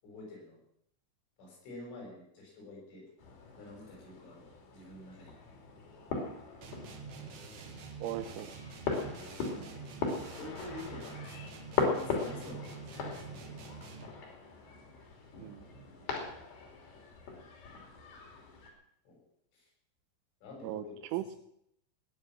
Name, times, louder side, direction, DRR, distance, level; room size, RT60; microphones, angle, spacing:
voice 1, 0.0-0.6 1.4-3.0 3.6-5.4 9.4-9.8 10.3-13.5 19.1-19.2 19.5-19.7 20.4-20.9, left 2 dB, 75° left, -1 dB, 8.8 m, -48 dB
sound 1, 3.2-18.7, left 4 dB, 55° left, 4.7 m, -39 dB
sound 2, 6.6-14.3, right 5 dB, 60° right, 3.1 m, -47 dB
voice 2, 8.0-8.5 15.4-15.9 20.6-20.8 21.1-21.4, right 13 dB, 80° right, 11 dB, 3.2 m, -38 dB
19.5 x 9.8 x 6.1 m, 0.73 s
omnidirectional pair, 5.6 m